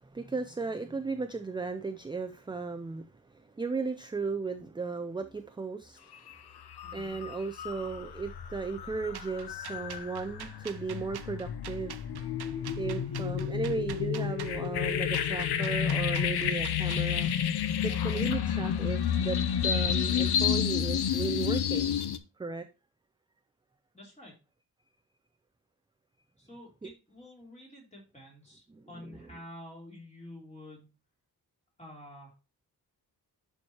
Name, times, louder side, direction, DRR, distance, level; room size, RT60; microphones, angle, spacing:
voice 1, 0.0-6.0 6.9-11.9 12.8-17.3 17.8-22.0 22.4-22.7 26.8-26.9 28.7-29.4, right 4 dB, 15° right, 7 dB, 0.4 m, -36 dB
sound 1, 6.1-6.3 6.7-22.2, left 8 dB, 80° left, 0.7 m, -30 dB
voice 2, 6.8-7.1 12.9-13.3 23.9-24.3 26.4-30.9 31.8-32.3, left 1 dB, 15° left, -2 dB, 3.1 m, -49 dB
sound 2, 9.1-17.1, right 9 dB, 75° right, 0.7 m, -46 dB
11.0 x 4.6 x 2.8 m, 0.29 s
wide cardioid pair, 155°, 38 cm